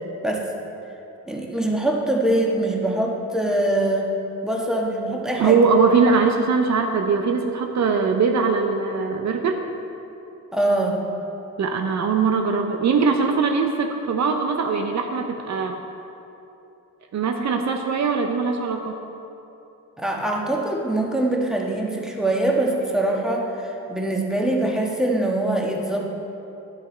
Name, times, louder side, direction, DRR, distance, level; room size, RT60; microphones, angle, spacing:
voice 1, 1.3-4.1 4.4-5.6 10.5-11.0 20.0-26.0, right 1 dB, ahead, -1 dB, 1.3 m, -23 dB
voice 2, 5.1-9.6 11.6-15.8 17.1-18.9, right 5 dB, 55° right, 4 dB, 0.7 m, -21 dB
10.0 x 6.4 x 4.3 m, 2.9 s
cardioid pair, 75°, 33 cm